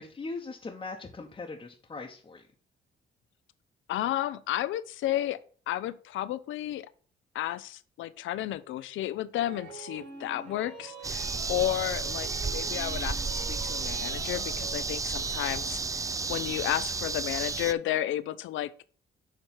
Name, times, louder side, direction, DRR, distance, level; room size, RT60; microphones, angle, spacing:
voice 1, 0.0-2.4, left 3 dB, 25° left, 0.9 m, -40 dB
voice 2, 3.9-5.4 5.7-6.9 7.3-18.7, left 13 dB, 80° left, 0.5 m, -32 dB
sound 1, 9.4-14.9, right 4 dB, 85° right, 2.4 m, -46 dB
sound 2, 11.0-17.7, right 4 dB, 15° right, 0.3 m, -32 dB
7.3 x 3.2 x 5.8 m
cardioid pair, 90°, 20 cm